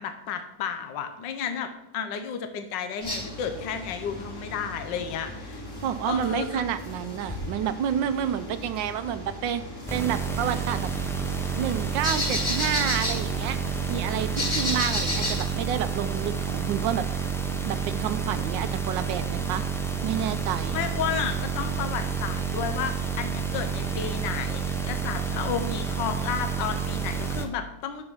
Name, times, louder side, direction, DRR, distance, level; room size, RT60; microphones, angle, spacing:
voice 1, 0.0-5.7 6.1-6.6 20.7-28.0, left 7 dB, 70° left, 8 dB, 1.5 m, -32 dB
sound 1, 3.0-15.4, left 1 dB, 25° left, 3.0 m, -34 dB
voice 2, 5.8-9.6 9.9-10.9 11.6-13.6 13.9-17.3 17.6-19.7 20.0-20.9, right 9 dB, 80° right, 11 dB, 1.3 m, -29 dB
sound 2, 9.9-27.4, right 6 dB, 5° left, 0.4 m, -29 dB
9.6 x 6.7 x 5.6 m, 0.92 s
omnidirectional pair, 2.0 m